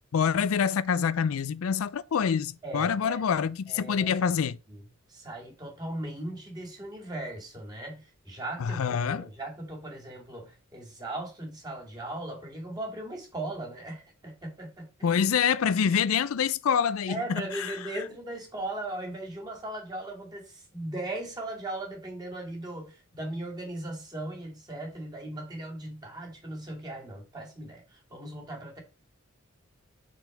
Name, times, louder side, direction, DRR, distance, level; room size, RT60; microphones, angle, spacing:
voice 1, 0.1-4.5 8.6-9.3 15.0-17.7, left 7 dB, 85° left, 0.4 m, -26 dB
voice 2, 2.6-3.2 3.7-4.3 4.7-4.8 5.1-15.3 17.1-28.8, right 1 dB, 20° right, 2.2 m, -38 dB
4.5 x 4.1 x 5.2 m
head